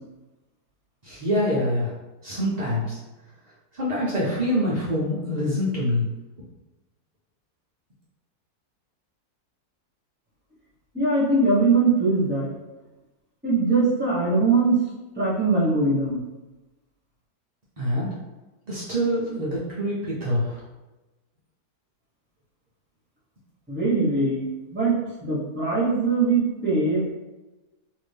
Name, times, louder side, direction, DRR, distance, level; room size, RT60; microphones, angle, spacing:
voice 1, 1.0-1.9 2.2-3.0 3.7-6.1 17.8-18.1 18.7-20.6, equal, 70° right, -8 dB, 0.4 m, -25 dB
voice 2, 10.9-12.5 13.4-14.8 15.2-16.2 23.7-25.0 25.2-27.1, right 3 dB, 10° right, -6 dB, 0.7 m, -21 dB
2.9 x 2.6 x 3.3 m, 1.1 s
omnidirectional pair, 1.6 m